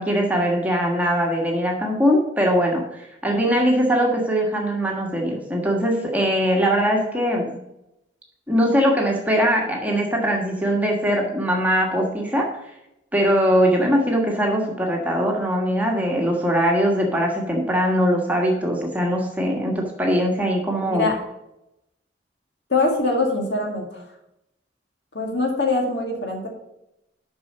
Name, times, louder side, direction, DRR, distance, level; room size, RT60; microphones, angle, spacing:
voice 1, 0.0-7.5 8.5-12.5 13.1-21.1, equal, 10° right, 0 dB, 1.4 m, -21 dB
voice 2, 20.9-21.2 22.7-24.0 25.1-26.5, left 3 dB, 65° left, 1 dB, 1.9 m, -23 dB
6.7 x 5.6 x 6.6 m, 0.86 s
head